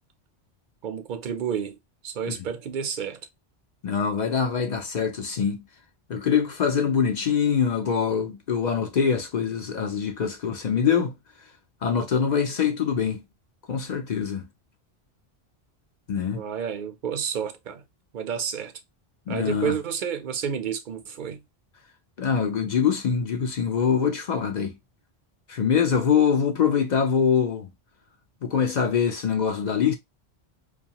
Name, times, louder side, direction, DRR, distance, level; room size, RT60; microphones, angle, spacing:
voice 1, 0.8-1.7 2.0-3.2 16.3-17.8 18.1-18.7 19.3-21.4, right 7 dB, 55° right, 0.6 m, -30 dB
voice 2, 3.8-5.6 6.1-11.2 11.8-13.2 13.7-14.4 16.1-16.5 19.3-19.7 22.2-24.8 25.5-27.7 28.4-30.0, left 7 dB, 55° left, 0.5 m, -24 dB
2.6 x 2.2 x 2.8 m
omnidirectional pair, 1.1 m